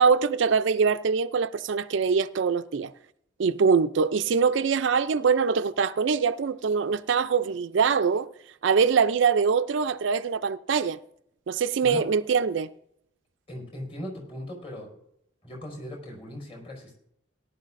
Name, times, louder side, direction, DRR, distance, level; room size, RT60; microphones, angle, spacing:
voice 1, 0.0-2.9 3.4-8.3 8.6-11.0 11.5-12.7, right 5 dB, 70° right, 0.4 m, -23 dB
voice 2, 13.5-14.9 15.4-16.9, left 1 dB, 30° left, 4.9 m, -38 dB
18.0 x 11.5 x 2.5 m
head